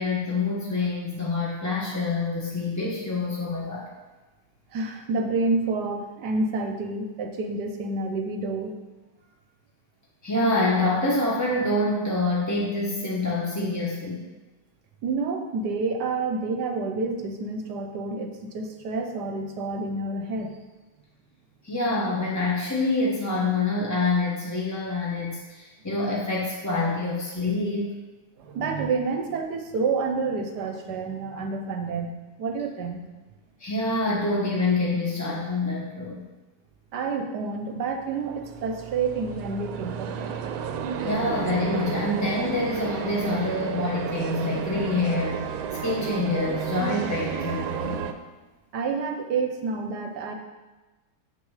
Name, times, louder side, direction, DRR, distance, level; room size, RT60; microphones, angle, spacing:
voice 1, 0.0-3.9 10.2-14.2 21.6-28.0 33.6-36.2 41.0-48.1, left 2 dB, 15° left, -5 dB, 0.6 m, -26 dB
voice 2, 4.7-8.8 15.0-20.6 28.4-32.1 32.4-33.0 36.9-40.3 48.7-50.3, right 4 dB, 65° right, 5 dB, 1.2 m, -29 dB
sound 1, 38.0-48.1, right 7 dB, 80° right, 1.4 m, -32 dB
7.6 x 6.9 x 4.9 m, 1.2 s
omnidirectional pair, 2.2 m